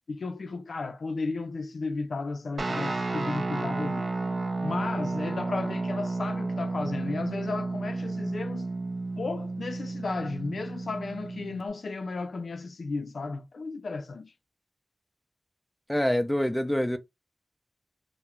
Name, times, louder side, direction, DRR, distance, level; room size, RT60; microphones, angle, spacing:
voice 1, 0.0-4.1 4.6-8.7 9.2-14.3, left 3 dB, 85° left, 0.3 m, -34 dB
Guitar, 2.6-11.7, right 3 dB, 65° right, 0.4 m, -32 dB
voice 2, 15.9-17.0, equal, 10° left, 0.4 m, -25 dB
2.3 x 2.0 x 2.9 m
wide cardioid pair, 55°, 0 cm